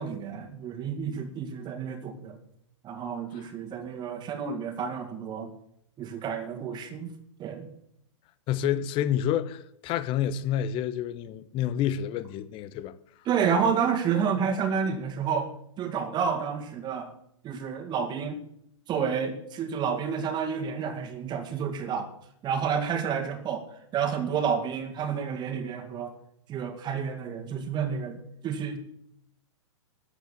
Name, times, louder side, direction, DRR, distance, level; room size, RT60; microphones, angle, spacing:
voice 1, 0.0-2.4 2.8-5.5 6.0-7.1 7.4-7.7 13.3-15.5 15.8-17.1 17.4-18.4 18.9-22.1 22.4-23.7 23.9-26.1 26.5-28.8, right 7 dB, 30° right, 2.1 m, -30 dB
voice 2, 8.5-12.9, left 10 dB, 35° left, 0.9 m, -29 dB
13.5 x 8.2 x 7.3 m
figure-of-eight pair, 110°, 16 cm